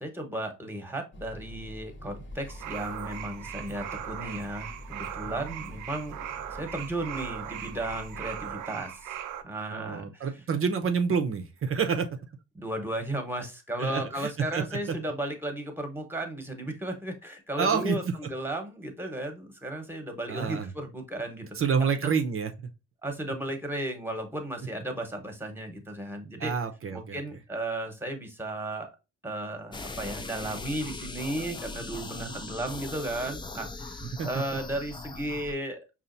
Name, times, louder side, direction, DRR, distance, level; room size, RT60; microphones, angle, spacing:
voice 1, 0.0-6.2 6.5-9.1 9.4-10.2 12.5-21.5 23.0-26.5 26.9-28.9 29.2-35.8, right 1 dB, 5° right, 1.1 m, -35 dB
sound 1, 1.1-8.5, left 1 dB, 40° left, 1.0 m, -45 dB
sound 2, 2.5-9.4, right 10 dB, 90° right, 0.5 m, -39 dB
voice 2, 9.7-12.1 13.8-14.6 17.6-18.1 20.3-20.7 21.6-22.7 26.4-27.2 32.0-32.4 34.1-34.4, right 6 dB, 45° right, 0.7 m, -28 dB
sound 3, 29.7-35.5, left 3 dB, 15° left, 0.4 m, -40 dB
5.5 x 2.5 x 2.6 m
cardioid pair, 90°, 30 cm